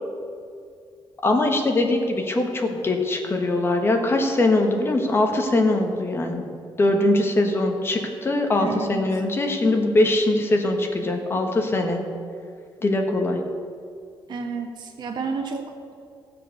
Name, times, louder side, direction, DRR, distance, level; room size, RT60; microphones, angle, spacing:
voice 1, 1.2-6.4 6.8-12.0 12.8-13.4, left 2 dB, 25° left, 3 dB, 1.6 m, -22 dB
voice 2, 8.6-9.0 14.3-15.9, right 4 dB, 55° right, 3 dB, 1.7 m, -31 dB
15.5 x 7.7 x 6.7 m, 2.3 s
cardioid pair, 160°, 9 cm